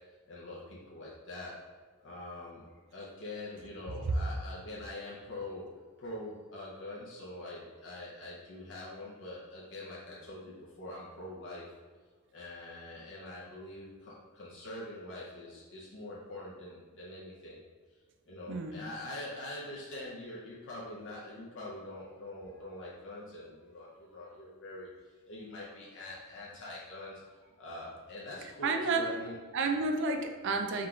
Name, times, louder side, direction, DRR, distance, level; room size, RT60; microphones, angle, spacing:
voice 1, 0.3-1.6 2.0-2.6 2.9-5.7 6.0-11.7 12.3-17.6 18.3-24.9 25.3-29.4, left 1 dB, 55° left, -6 dB, 0.7 m, -44 dB
voice 2, 28.4-29.1 29.5-30.9, right 3 dB, 55° right, 5 dB, 0.4 m, -31 dB
3.8 x 2.4 x 4.4 m, 1.5 s
head